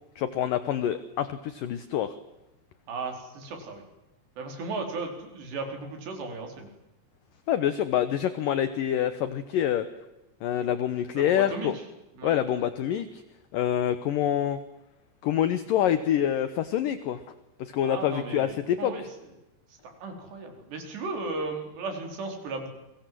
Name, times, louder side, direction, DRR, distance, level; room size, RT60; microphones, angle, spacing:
voice 1, 0.2-2.1 7.5-9.9 10.4-11.8 12.2-13.2 13.5-14.6 15.2-17.2 17.6-18.9, left 10 dB, 70° left, 12 dB, 2.3 m, -26 dB
voice 2, 2.9-3.8 4.4-6.7 11.2-11.7 12.2-12.4 17.8-19.0 19.8-22.7, right 3 dB, 75° right, 4 dB, 6.7 m, -35 dB
29.5 x 23.5 x 7.7 m, 0.97 s
omnidirectional pair, 5.0 m